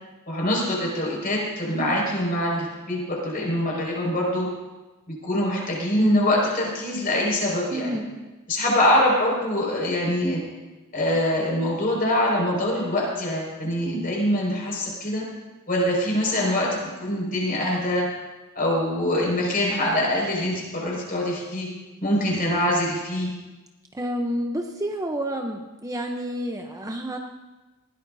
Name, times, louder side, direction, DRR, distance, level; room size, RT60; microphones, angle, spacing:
voice 1, 0.3-4.5 5.1-8.0 8.5-10.4 10.9-15.2 15.7-18.1 18.5-21.7 22.0-23.3, left 1 dB, 45° left, -3 dB, 5.5 m, -24 dB
voice 2, 7.7-8.1 23.9-27.2, equal, 15° right, 3 dB, 0.7 m, -29 dB
20.0 x 17.0 x 2.7 m, 1.2 s
head